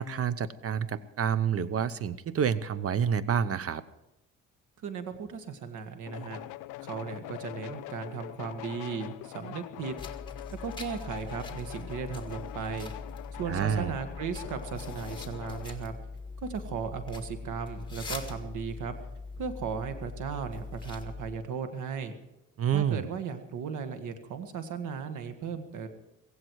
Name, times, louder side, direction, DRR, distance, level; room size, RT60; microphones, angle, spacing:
voice 1, 0.0-3.8 13.5-14.0 22.6-23.0, right 8 dB, 50° right, 16 dB, 0.9 m, -28 dB
voice 2, 4.8-6.4 6.8-10.0 10.6-12.9 13.3-15.9 16.4-18.9 19.4-22.1 22.7-25.9, right 6 dB, 80° right, 8 dB, 1.7 m, -36 dB
sound 1, 6.1-15.7, left 17 dB, 90° left, 0.5 m, -43 dB
sound 2, 10.0-21.4, left 4 dB, 15° left, 2.1 m, -42 dB
16.5 x 16.0 x 4.7 m, 0.91 s
cardioid pair, 90°, 30 cm